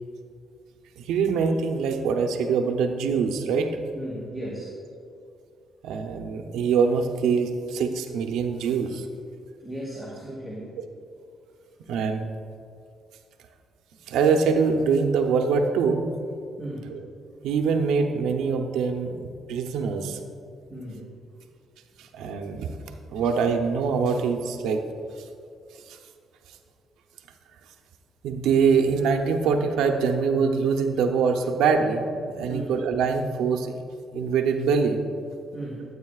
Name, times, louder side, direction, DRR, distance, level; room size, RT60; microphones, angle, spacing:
voice 1, 1.0-3.8 5.8-9.0 11.9-12.3 14.1-16.1 16.9-17.0 17.4-20.2 22.0-22.8 23.1-24.8 28.2-33.8 34.1-35.1, right 5 dB, 90° right, 5 dB, 0.7 m, -24 dB
voice 2, 3.9-4.7 9.6-10.7 16.6-16.9 20.7-21.1 32.5-32.7 35.5-35.8, right 1 dB, 5° left, -5 dB, 2.0 m, -36 dB
14.0 x 8.3 x 2.4 m, 2.4 s
cardioid pair, 90°, 0 cm